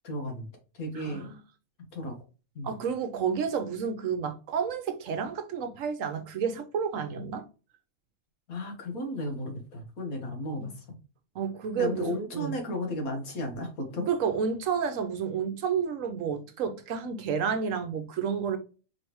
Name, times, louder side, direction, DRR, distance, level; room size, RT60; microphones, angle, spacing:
voice 1, 0.0-0.5 0.7-1.3 1.9-2.2 2.5-2.8 8.5-11.0 11.7-14.1, left 1 dB, 85° left, 1.8 m, -34 dB
voice 2, 0.9-1.4 2.6-7.4 10.6-10.7 11.3-12.6 14.1-18.6, right 6 dB, 70° right, 1.1 m, -30 dB
4.7 x 3.3 x 3.0 m
omnidirectional pair, 1.5 m